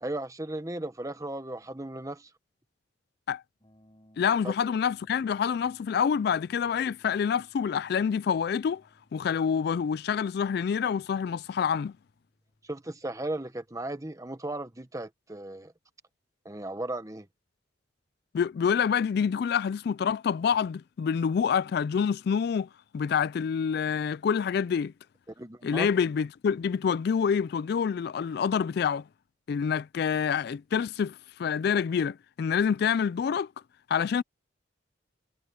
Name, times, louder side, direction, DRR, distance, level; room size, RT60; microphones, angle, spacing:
voice 1, 0.0-2.3 4.4-4.5 12.7-15.7 16.4-17.3 25.4-25.9, right 1 dB, 15° right, 1.1 m, -36 dB
sound 1, 3.6-13.7, equal, 25° left, 7.1 m, -64 dB
voice 2, 4.2-8.8 9.1-11.9 18.3-22.7 22.9-24.9 25.6-29.0 29.5-33.5 33.9-34.2, left 7 dB, 55° left, 0.3 m, -27 dB
head